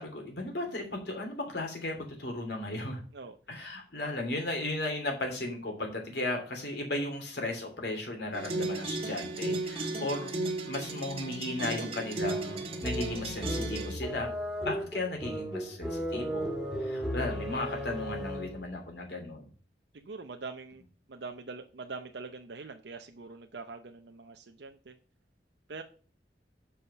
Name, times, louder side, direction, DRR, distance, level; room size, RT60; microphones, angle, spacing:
voice 1, 0.0-3.0 3.5-10.3 10.6-14.3 14.6-16.5 16.8-19.4, left 2 dB, 65° left, 2 dB, 2.8 m, -35 dB
sound 1, 8.3-13.9, right 2 dB, 35° right, 1.6 m, -35 dB
sound 2, 12.2-18.7, equal, ahead, 2.0 m, -35 dB
voice 2, 19.9-20.8 21.1-25.0 25.7-25.8, right 4 dB, 70° right, 5 dB, 0.7 m, -43 dB
7.5 x 5.6 x 5.6 m, 0.38 s
head